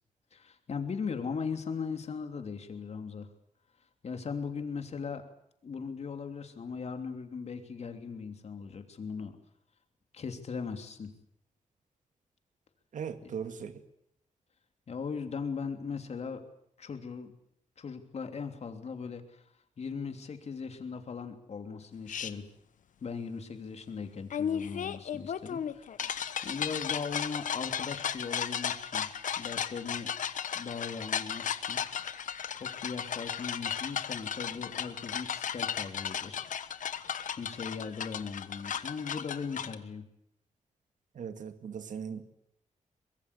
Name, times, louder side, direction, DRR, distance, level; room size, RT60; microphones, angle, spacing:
voice 1, 0.3-3.3 4.0-5.2 5.6-9.4 10.1-11.1 14.9-16.4 16.8-17.3 17.8-19.4 19.8-22.5 23.0-29.1 29.4-30.1 30.5-31.8 32.5-36.5 37.3-40.1, left 5 dB, 55° left, 6 dB, 3.2 m, -39 dB
voice 2, 12.9-13.8 41.1-42.3, right 7 dB, 75° right, 9 dB, 2.2 m, -39 dB
sound 1, 22.1-22.3 24.3-39.8, left 8 dB, 75° left, 1.2 m, -35 dB
24.0 x 21.5 x 8.4 m, 0.75 s
wide cardioid pair, 110°, 13 cm